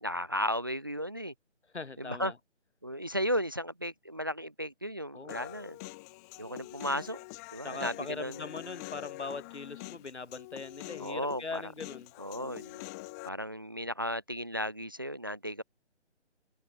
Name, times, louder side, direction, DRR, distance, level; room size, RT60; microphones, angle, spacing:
voice 1, 0.0-1.3 2.0-2.3 2.8-5.8 6.4-7.2 7.5-8.4 11.0-11.6 12.2-12.8 13.2-15.6, equal, 20° right, 0.7 m, -34 dB
voice 2, 1.7-2.4 5.1-5.5 7.6-12.1, left 4 dB, 70° left, 3.7 m, -41 dB
Human voice, 5.3-13.3, left 25 dB, 15° left, 6.9 m, -45 dB
figure-of-eight pair, 165°, 35 cm